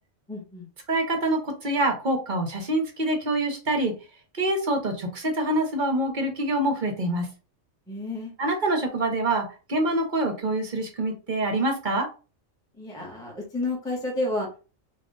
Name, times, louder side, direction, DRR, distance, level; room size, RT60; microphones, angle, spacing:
voice 1, 0.3-0.7 7.9-8.3 12.8-14.6, left 2 dB, 5° left, -2 dB, 0.9 m, -31 dB
voice 2, 0.9-3.9 4.3-7.3 8.4-12.1, right 1 dB, 45° right, 4 dB, 0.8 m, -25 dB
3.6 x 2.5 x 3.7 m, 0.34 s
omnidirectional pair, 1.4 m